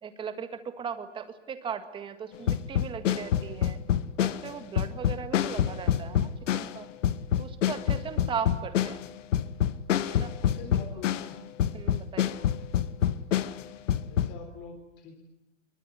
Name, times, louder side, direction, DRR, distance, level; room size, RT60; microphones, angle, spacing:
voice 1, 0.0-3.8 4.2-6.9 7.4-9.1 10.1-10.3 11.7-12.4, right 7 dB, 15° right, 9 dB, 1.9 m, -38 dB
sound 1, 2.5-11.3 11.6-14.3, left 10 dB, 75° left, 1.5 m, -27 dB
voice 2, 10.4-11.4 14.1-15.2, left 5 dB, 25° left, 3 dB, 3.8 m, -45 dB
24.0 x 22.5 x 9.8 m, 0.88 s
hypercardioid pair, 160°, 38 cm